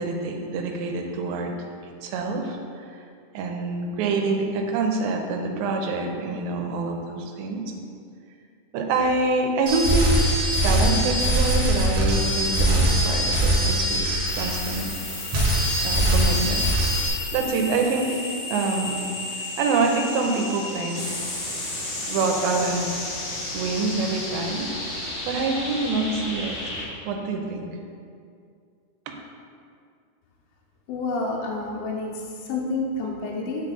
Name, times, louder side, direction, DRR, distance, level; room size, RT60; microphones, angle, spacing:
voice 1, 0.0-1.5 2.0-2.9 3.3-7.6 8.7-14.9 15.8-16.6 17.3-18.2 18.5-19.1 19.6-21.2 22.1-23.1 23.5-24.7 25.3-26.6 27.1-27.7 29.1-29.2, right 3 dB, 80° right, 3 dB, 2.3 m, -26 dB
sound 1, 9.7-15.0 15.3-17.1, right 1 dB, 60° right, 1.6 m, -22 dB
sound 2, 14.3-26.9, left 2 dB, 60° left, 1.8 m, -33 dB
voice 2, 30.9-33.7, left 3 dB, 85° left, -1 dB, 2.4 m, -29 dB
8.9 x 4.0 x 3.8 m, 2.3 s
omnidirectional pair, 4.4 m